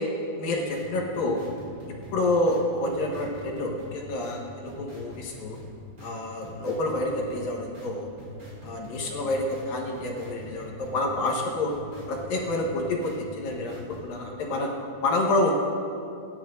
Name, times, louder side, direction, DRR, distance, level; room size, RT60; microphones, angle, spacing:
voice 1, 0.4-1.4 1.9-5.6 6.0-8.1 8.6-11.7 12.1-14.7 15.0-15.5, left 2 dB, 65° left, -1 dB, 2.5 m, -28 dB
sound 1, 0.5-14.2, left 1 dB, 20° right, 3.2 m, -44 dB
25.5 x 11.5 x 2.6 m, 2.6 s
omnidirectional pair, 5.1 m